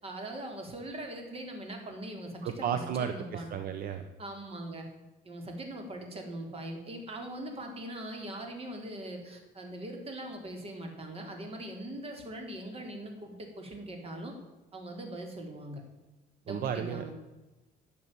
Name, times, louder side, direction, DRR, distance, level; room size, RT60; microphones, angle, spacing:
voice 1, 0.0-3.6 4.2-4.9 5.2-14.3 14.7-15.8 16.4-17.1, right 1 dB, 35° right, 3 dB, 3.7 m, -41 dB
voice 2, 2.4-4.1 16.5-17.1, right 8 dB, 60° right, 8 dB, 1.0 m, -33 dB
12.5 x 7.5 x 9.2 m, 1.1 s
cardioid pair, 110°, 17 cm